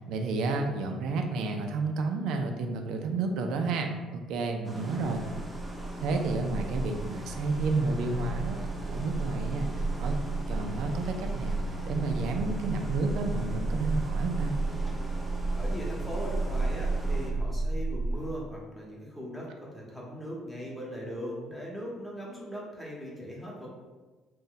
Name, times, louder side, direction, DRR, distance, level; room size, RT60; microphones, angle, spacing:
voice 1, 0.0-5.2 6.0-8.6 8.9-10.2 10.5-11.6 11.8-14.6, right 3 dB, 75° right, 4 dB, 0.4 m, -31 dB
sound 1, 4.6-17.3, equal, 15° right, 0.5 m, -42 dB
sound 2, 5.2-18.2, right 3 dB, 70° left, 0.4 m, -33 dB
voice 2, 15.5-23.7, equal, ahead, -5 dB, 0.9 m, -39 dB
2.6 x 2.2 x 3.8 m, 1.3 s
cardioid pair, 100°, 0 cm